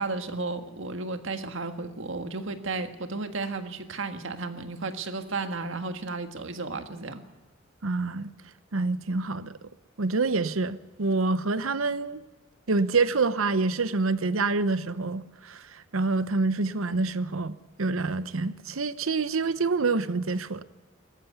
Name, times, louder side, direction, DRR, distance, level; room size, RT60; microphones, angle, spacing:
voice 1, 0.0-7.2, right 3 dB, 70° right, 1.7 m, -33 dB
voice 2, 7.8-8.3 8.7-9.5 10.0-12.2 12.7-15.6 15.9-20.6, right 3 dB, 90° right, 0.9 m, -27 dB
19.5 x 14.0 x 9.7 m
head